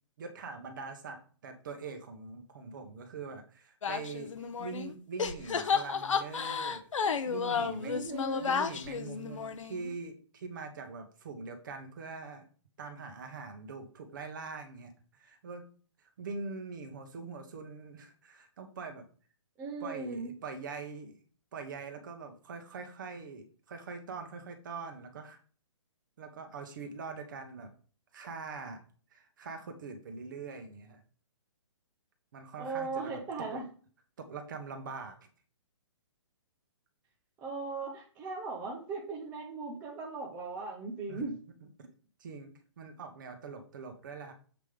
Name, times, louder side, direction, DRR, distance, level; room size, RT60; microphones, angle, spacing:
voice 1, 0.2-6.9 7.3-8.0 8.4-12.5 12.8-15.6 16.0-19.1 19.8-21.2 21.5-25.4 26.2-27.7 28.1-28.8 29.1-31.0 32.3-33.2 33.5-33.6 34.2-35.3 41.1-41.2 41.8-41.9 42.2-44.3, right 4 dB, 40° right, 5 dB, 1.2 m, -43 dB
sound 1, 3.8-4.9 5.2-9.9, left 6 dB, 80° left, 0.9 m, -32 dB
voice 2, 7.8-8.7 19.6-20.3 32.6-33.6 37.4-41.3, right 3 dB, 10° right, -2 dB, 0.6 m, -38 dB
7.4 x 3.7 x 5.0 m, 0.41 s
hypercardioid pair, 175°, 16 cm